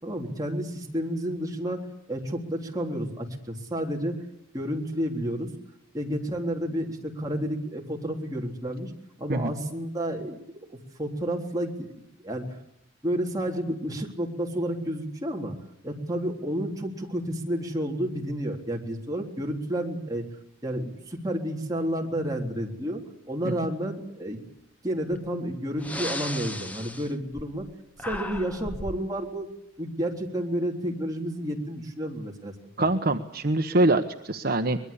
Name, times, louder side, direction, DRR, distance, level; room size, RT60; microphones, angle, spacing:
voice 1, 0.0-4.2 4.5-5.5 5.9-8.9 9.2-10.4 10.7-12.6 13.0-15.6 15.8-20.2 20.6-23.0 23.3-24.4 24.8-27.7 28.1-29.5 29.8-32.9, equal, 20° right, 0 dB, 3.7 m, -31 dB
Breathing, 25.2-25.3 25.7-27.7 28.0-29.1, left 1 dB, 10° left, 1.0 m, -35 dB
voice 2, 32.8-34.8, right 2 dB, 50° right, 6 dB, 1.1 m, -24 dB
24.0 x 21.5 x 8.5 m, 0.78 s
head